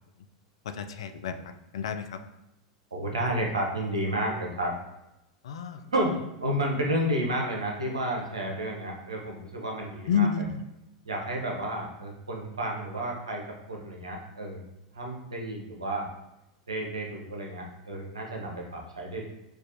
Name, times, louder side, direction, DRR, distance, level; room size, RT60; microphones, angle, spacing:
voice 1, 0.6-2.2 5.4-5.8 10.1-10.6, left 6 dB, 75° left, 8 dB, 0.3 m, -30 dB
voice 2, 2.9-4.8 5.9-10.3 11.0-14.6 14.9-16.1 16.7-19.3, right 1 dB, 90° right, 0 dB, 0.8 m, -31 dB
4.6 x 2.4 x 2.6 m, 0.92 s
hypercardioid pair, 95°, 3 cm